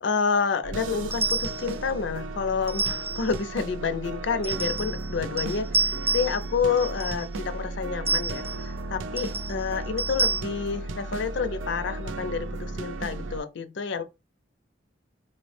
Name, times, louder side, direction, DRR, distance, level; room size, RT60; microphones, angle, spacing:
voice 1, 0.0-14.0, left 5 dB, 70° left, 0.5 m, -29 dB
sound 1, 0.6-13.4, right 2 dB, 80° right, 0.4 m, -35 dB
sound 2, 1.1-1.7 2.7-3.3 4.4-5.1 5.4-6.5 6.8-7.3 8.1-8.6 9.2-9.5 10.0-10.4, right 3 dB, 15° right, 0.5 m, -28 dB
4.1 x 2.0 x 3.1 m
head